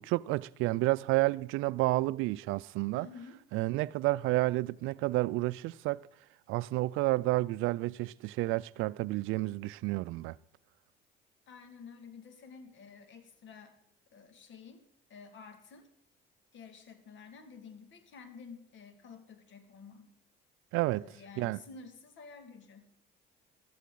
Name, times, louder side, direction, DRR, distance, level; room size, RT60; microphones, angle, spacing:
voice 1, 0.0-3.1 3.5-6.1 6.5-10.4 20.7-21.0 21.4-21.6, right 19 dB, 75° right, 0.4 m, -30 dB
voice 2, 2.9-3.4 8.8-8.9 11.5-13.8 14.1-15.9 16.5-20.1 20.9-22.9, left 5 dB, 60° left, 2.2 m, -51 dB
14.5 x 13.0 x 3.9 m
supercardioid pair, 75°, 21 cm